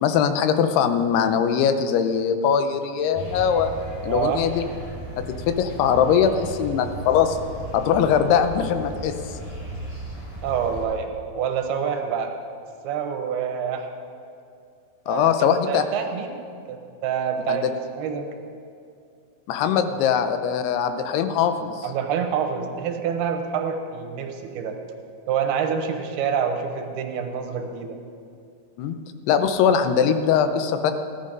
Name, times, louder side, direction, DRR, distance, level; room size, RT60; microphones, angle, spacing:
voice 1, 0.0-3.7 4.0-4.6 5.5-7.4 7.7-9.4 15.1-15.8 17.5-17.7 19.5-21.9 28.8-29.0 29.3-30.9, left 7 dB, 90° left, 8 dB, 2.8 m, -21 dB
sound 1, 3.1-10.8, right 1 dB, 50° left, 5.1 m, -36 dB
voice 2, 4.1-4.4 10.4-12.3 12.8-13.9 15.1-16.3 16.7-17.7 17.9-18.3 21.8-24.8 25.3-28.0, right 7 dB, 85° right, 4 dB, 3.0 m, -27 dB
16.0 x 12.0 x 5.3 m, 2.5 s
omnidirectional pair, 4.5 m